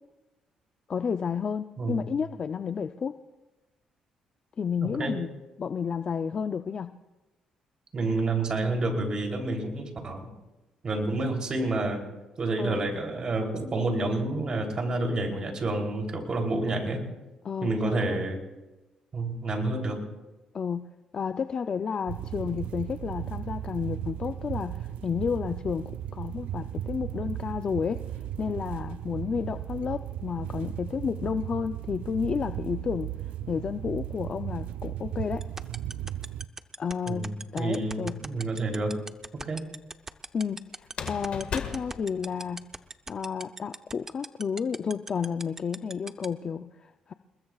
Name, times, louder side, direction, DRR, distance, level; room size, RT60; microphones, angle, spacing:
voice 1, 0.9-3.1 4.6-5.3 5.6-7.0 12.6-12.8 17.4-18.2 20.5-33.1 33.5-35.4 36.8-38.1 40.3-42.6 43.1-47.1, left 6 dB, 40° left, 9 dB, 0.5 m, -31 dB
voice 2, 1.8-2.1 4.8-5.2 7.9-10.3 10.8-12.0 12.4-17.1 17.6-18.4 19.1-20.0 37.1-39.0 39.3-39.7, right 2 dB, 40° right, 2 dB, 3.2 m, -29 dB
sound 1, 22.1-36.5, right 11 dB, 90° right, 0.6 m, -36 dB
sound 2, 35.4-46.3, right 3 dB, 20° right, 0.7 m, -37 dB
sound 3, 37.8-38.4 40.8-42.8, left 7 dB, 60° left, 1.7 m, -37 dB
29.5 x 20.5 x 2.4 m, 1.1 s
cardioid pair, 110°, 2 cm